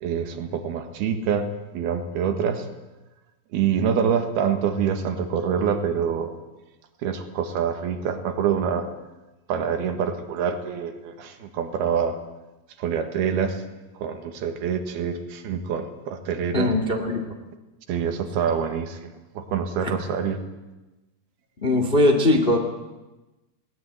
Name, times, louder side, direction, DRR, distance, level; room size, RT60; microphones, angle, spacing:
voice 1, 0.0-2.7 3.5-6.3 7.0-8.9 9.5-12.2 12.8-13.6 14.0-16.7 17.9-19.1 19.4-20.4, right 7 dB, 85° right, 7 dB, 3.6 m, -26 dB
voice 2, 16.5-17.3 19.8-19.9 21.6-22.6, left 1 dB, 30° left, 5 dB, 1.0 m, -20 dB
20.5 x 18.5 x 9.5 m, 1.1 s
omnidirectional pair, 4.4 m